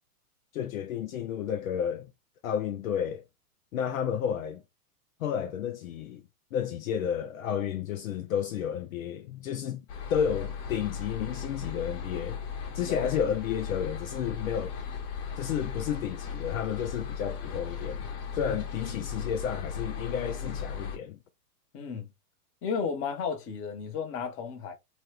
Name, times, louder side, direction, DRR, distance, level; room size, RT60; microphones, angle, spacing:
voice 1, 0.5-2.1 2.4-3.2 3.7-4.6 5.2-6.2 6.5-9.8 10.1-12.4 12.7-14.7 15.4-21.2, left 8 dB, 60° left, 0.6 m, -31 dB
sound 1, 9.9-21.0, left 6 dB, 45° left, 1.3 m, -37 dB
voice 2, 12.7-13.1 21.7-22.1 22.6-24.7, left 6 dB, 30° left, 1.0 m, -33 dB
3.0 x 2.3 x 3.2 m
hypercardioid pair, 125°, 46 cm